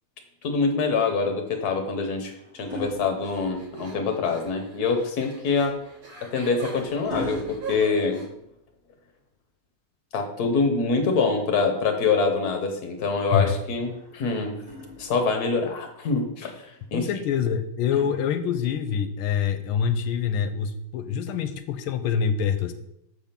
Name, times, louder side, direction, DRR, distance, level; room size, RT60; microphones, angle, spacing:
voice 1, 0.4-5.7 6.3-8.2 10.1-14.5 15.0-16.5 16.9-17.0, left 4 dB, 55° left, 4 dB, 1.3 m, -25 dB
sound 1, 1.5-4.0 5.6-8.8 10.5-11.7 13.7-15.5 16.7-17.0, left 1 dB, 10° right, 1.7 m, -42 dB
sound 2, 3.2-8.2, right 3 dB, 75° right, 2.6 m, -41 dB
voice 2, 16.9-22.7, left 7 dB, 80° left, 9 dB, 1.4 m, -25 dB
7.0 x 3.6 x 5.7 m, 0.78 s
omnidirectional pair, 2.4 m